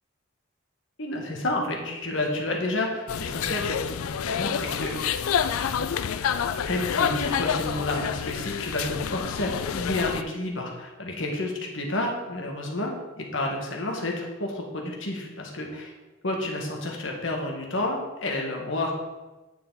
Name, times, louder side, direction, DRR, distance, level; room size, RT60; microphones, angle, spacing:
voice 1, 1.0-5.2 5.5-5.9 6.1-6.3 6.6-15.9 16.2-18.9, left 2 dB, 60° left, 0 dB, 1.6 m, -30 dB
sound 1, 3.1-10.2, left 7 dB, 85° left, 0.4 m, -28 dB
9.5 x 6.8 x 4.0 m, 1.1 s
head